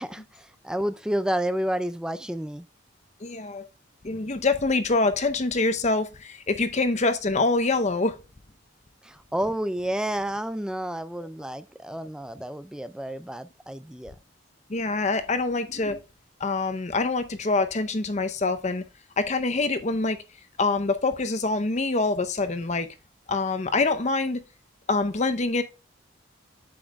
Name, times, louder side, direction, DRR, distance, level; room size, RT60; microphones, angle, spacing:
voice 1, 0.0-2.6 9.0-14.1, right 1 dB, 5° right, 0.3 m, -30 dB
voice 2, 3.2-3.7 4.0-8.2 14.7-16.0 16.4-18.8 19.2-20.2 20.6-22.9 23.3-24.4 24.9-25.6, left 3 dB, 35° left, 0.7 m, -25 dB
8.6 x 7.0 x 2.3 m
head